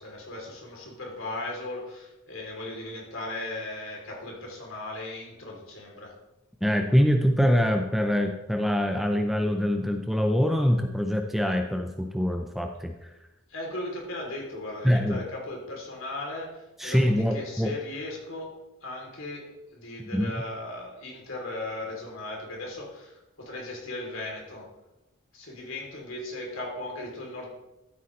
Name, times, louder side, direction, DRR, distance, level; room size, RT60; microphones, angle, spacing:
voice 1, 0.0-6.1 13.5-24.7 25.3-27.5, left 2 dB, 60° left, -1 dB, 3.2 m, -37 dB
voice 2, 6.6-12.9 14.8-15.2 16.8-17.7 20.1-20.3, equal, ahead, 4 dB, 0.5 m, -24 dB
13.5 x 8.4 x 3.2 m, 0.96 s
head